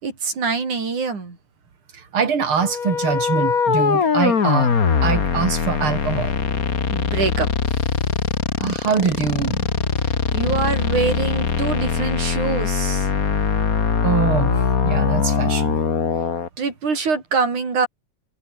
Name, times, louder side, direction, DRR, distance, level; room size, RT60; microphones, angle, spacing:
voice 1, 0.0-1.4 6.9-7.5 10.3-13.1 16.6-17.9, right 4 dB, 80° right, 6.6 m, -24 dB
voice 2, 2.1-4.7 5.0-6.3 8.6-9.6 14.0-15.8, right 6 dB, 45° right, 3.4 m, -23 dB
sound 1, 2.6-16.5, left 6 dB, 35° left, 1.7 m, -21 dB
omnidirectional pair, 3.4 m